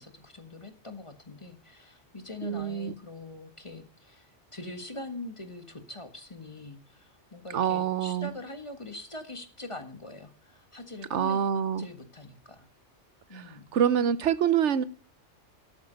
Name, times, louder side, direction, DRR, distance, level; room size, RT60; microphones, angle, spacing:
voice 1, 0.0-11.4 11.8-12.7 13.3-13.7, left 2 dB, 25° left, 8 dB, 1.6 m, -43 dB
voice 2, 2.4-2.9 7.5-8.3 11.1-11.9 13.3-13.5 13.7-14.8, right 8 dB, 75° right, 16 dB, 1.1 m, -26 dB
12.0 x 8.8 x 5.2 m, 0.43 s
omnidirectional pair, 1.2 m